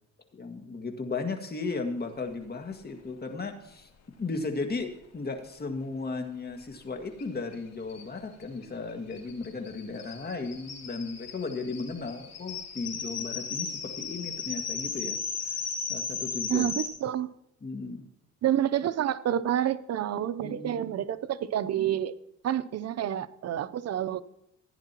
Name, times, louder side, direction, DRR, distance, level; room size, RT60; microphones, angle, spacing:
voice 1, 0.3-3.9 4.2-15.2 15.9-16.7 17.6-18.1 20.4-20.8, left 3 dB, 30° left, 5 dB, 1.9 m, -35 dB
sound 1, 7.2-7.3 7.5-7.6 7.9-16.9, left 6 dB, 60° left, 2.5 m, -36 dB
voice 2, 16.5-17.3 18.4-22.2 22.4-24.2, right 11 dB, 55° right, 14 dB, 0.7 m, -28 dB
15.5 x 10.0 x 3.0 m, 0.79 s
cardioid pair, 90°, 30 cm